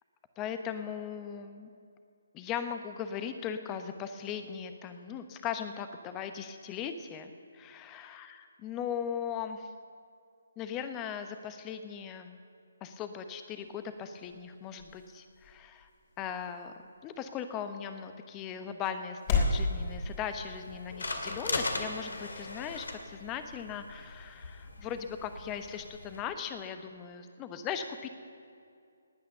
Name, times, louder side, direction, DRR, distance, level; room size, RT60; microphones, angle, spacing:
voice 1, 0.4-1.7 2.3-9.7 10.6-12.4 12.8-15.9 16.2-16.7 17.0-28.1, left 8 dB, 20° left, 9 dB, 1.0 m, -38 dB
sound 1, 13.4-19.6, left 4 dB, 35° left, 3.5 m, -36 dB
sound 2, 19.4-26.2, left 2 dB, 70° left, 2.0 m, -39 dB
19.0 x 9.3 x 6.8 m, 2.4 s
figure-of-eight pair, 145°, 0 cm